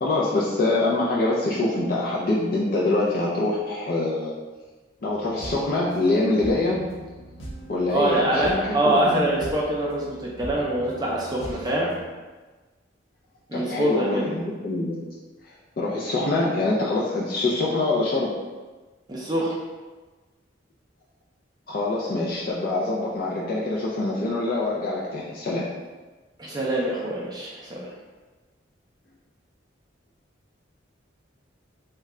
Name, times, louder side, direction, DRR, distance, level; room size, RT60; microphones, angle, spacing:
voice 1, 0.0-4.3 5.0-6.9 7.7-9.3 13.5-15.1 15.4-18.4 21.7-25.7, left 2 dB, 50° left, -5 dB, 0.4 m, -25 dB
sound 1, 5.0-12.0, right 1 dB, 85° left, 0.8 m, -41 dB
voice 2, 7.9-11.9 13.5-14.3 19.1-19.5 26.4-27.9, right 1 dB, 20° right, -4 dB, 0.4 m, -24 dB
3.1 x 2.2 x 3.6 m, 1.3 s
head